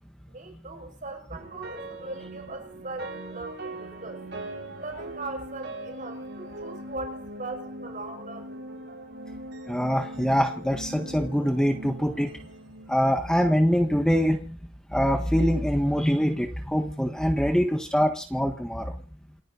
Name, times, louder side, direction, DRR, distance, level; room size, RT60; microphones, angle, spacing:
voice 1, 0.3-4.2 4.8-8.5, right 2 dB, 45° right, 6.0 m, -39 dB
sound 1, 1.3-13.6, right 1 dB, 60° right, 6.1 m, -41 dB
voice 2, 9.7-12.3 12.9-14.6 14.9-18.9, equal, 5° left, 1.5 m, -24 dB
28.5 x 10.5 x 4.0 m
head